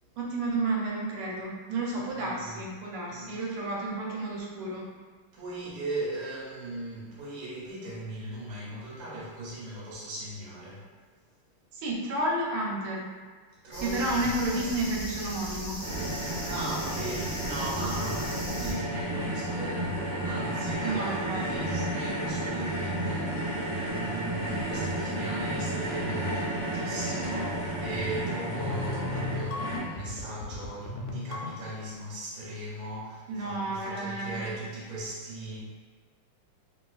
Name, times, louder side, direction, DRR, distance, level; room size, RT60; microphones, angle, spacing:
voice 1, 0.2-4.9 11.7-13.2 13.8-15.8 20.8-21.6 33.3-34.4, right 2 dB, 90° right, -3 dB, 1.6 m, -31 dB
voice 2, 1.9-2.6 3.0-3.3 5.3-10.9 13.6-14.7 16.1-35.6, right 1 dB, 55° right, -7 dB, 1.2 m, -38 dB
sound 1, 13.7-18.7, equal, 50° left, 0.6 m, -37 dB
sound 2, 15.8-29.8, right 1 dB, 20° right, 0.5 m, -32 dB
sound 3, 28.5-31.9, left 2 dB, 75° left, 1.2 m, -36 dB
3.0 x 2.9 x 2.3 m, 1.5 s
omnidirectional pair, 2.4 m